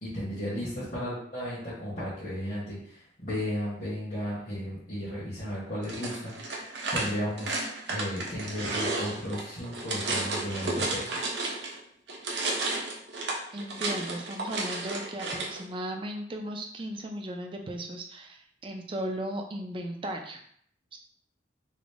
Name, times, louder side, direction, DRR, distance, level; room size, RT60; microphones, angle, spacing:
voice 1, 0.0-6.6 6.9-7.5 7.9-11.3, equal, 45° left, -11 dB, 1.4 m, -34 dB
sound 1, 5.8-11.8 12.1-15.6, right 2 dB, 70° right, 0.7 m, -32 dB
voice 2, 13.5-20.4 20.9-21.0, right 1 dB, 30° right, 3 dB, 0.4 m, -36 dB
4.0 x 2.0 x 3.4 m, 0.63 s
head